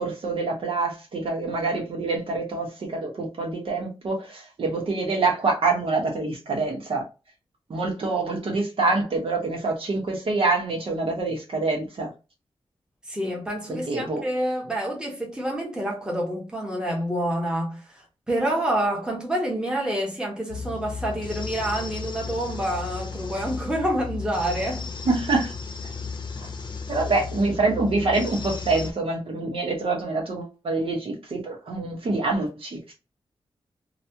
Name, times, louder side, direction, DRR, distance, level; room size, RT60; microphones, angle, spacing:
voice 1, 0.0-7.0 7.7-12.1 13.7-14.2 25.0-25.5 26.9-32.9, right 3 dB, 70° right, 1.2 m, -26 dB
voice 2, 13.1-24.9, right 1 dB, 10° right, 1.1 m, -28 dB
sound 1, 20.5-28.9, left 4 dB, 50° left, 0.7 m, -34 dB
3.1 x 2.4 x 2.8 m
wide cardioid pair, 155°, 10 cm